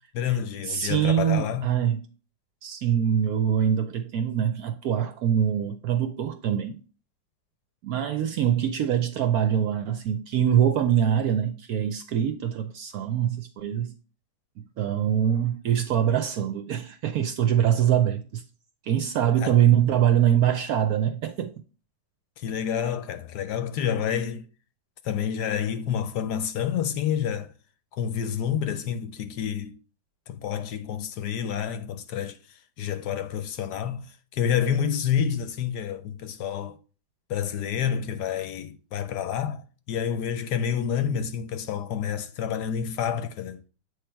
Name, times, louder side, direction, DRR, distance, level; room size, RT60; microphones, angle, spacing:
voice 1, 0.1-1.7 19.4-19.6 22.4-24.5 25.0-27.5 27.9-29.8 30.3-32.4 32.8-36.8 37.3-43.6, left 8 dB, 70° left, 1.1 m, -28 dB
voice 2, 0.7-2.0 2.6-6.8 7.8-13.9 14.6-18.4 18.9-21.5, right 9 dB, 70° right, 0.9 m, -24 dB
7.9 x 3.3 x 4.4 m
omnidirectional pair, 2.0 m